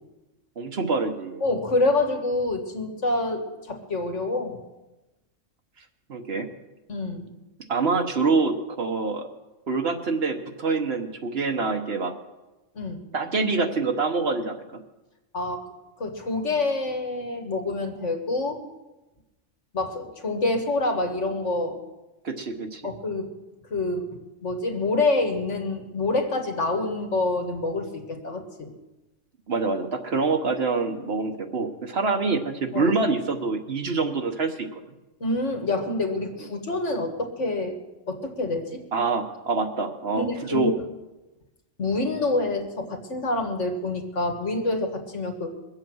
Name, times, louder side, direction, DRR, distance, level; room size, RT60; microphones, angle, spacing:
voice 1, 0.6-1.4 6.1-6.5 7.7-9.3 9.7-12.1 13.1-14.6 22.2-22.8 29.5-34.7 38.9-40.7, right 4 dB, 55° right, 5 dB, 1.3 m, -26 dB
voice 2, 1.4-4.6 6.9-7.3 12.8-13.0 15.3-15.6 16.0-18.6 19.7-21.8 22.8-23.3 23.7-24.1 24.4-28.7 32.7-32.9 35.2-37.8 38.1-38.8 40.2-40.8 41.8-45.5, left 2 dB, 70° left, 4 dB, 2.0 m, -27 dB
22.0 x 7.9 x 6.2 m, 1.1 s
omnidirectional pair, 1.3 m